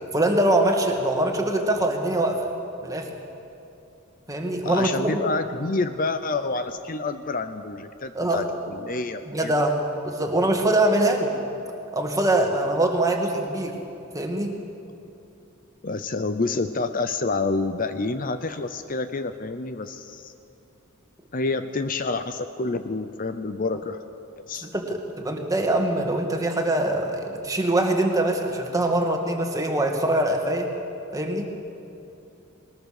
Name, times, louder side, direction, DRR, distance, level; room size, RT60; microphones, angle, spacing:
voice 1, 0.1-2.5 2.8-3.1 4.3-5.2 8.2-8.5 9.3-11.4 11.9-13.8 14.1-14.6 24.6-30.7 31.1-31.4, right 1 dB, 15° right, 3 dB, 1.9 m, -23 dB
voice 2, 4.6-9.7 15.8-20.3 21.3-24.0 24.5-24.7, left 3 dB, 40° left, 9 dB, 0.7 m, -28 dB
20.5 x 20.0 x 6.6 m, 2.8 s
head